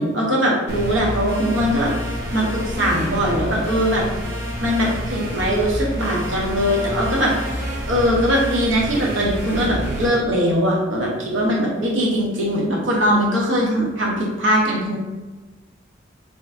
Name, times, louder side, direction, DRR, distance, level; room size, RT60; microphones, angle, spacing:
voice 1, 0.0-1.9 2.3-4.2 4.6-7.4 7.9-15.0, equal, 75° right, -3 dB, 1.0 m, -21 dB
sound 1, 0.7-10.1, equal, 55° right, 0.9 m, -28 dB
4.1 x 3.2 x 2.6 m, 1.2 s
head